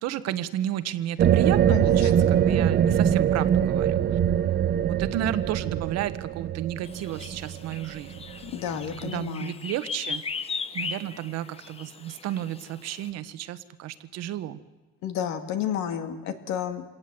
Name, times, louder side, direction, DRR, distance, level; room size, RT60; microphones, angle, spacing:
voice 1, 0.0-4.0 4.8-8.1 9.0-10.2 10.7-14.6, right 12 dB, 55° right, 13 dB, 1.2 m, -32 dB
sound 1, 1.2-8.5, right 9 dB, 30° right, 0.8 m, -23 dB
voice 2, 1.7-2.2 8.4-9.6 15.0-16.8, left 9 dB, 60° left, 8 dB, 2.3 m, -31 dB
sound 2, 6.8-13.1, left 5 dB, 20° left, 0.9 m, -38 dB
27.0 x 18.5 x 7.7 m, 1.2 s
cardioid pair, 150°, 31 cm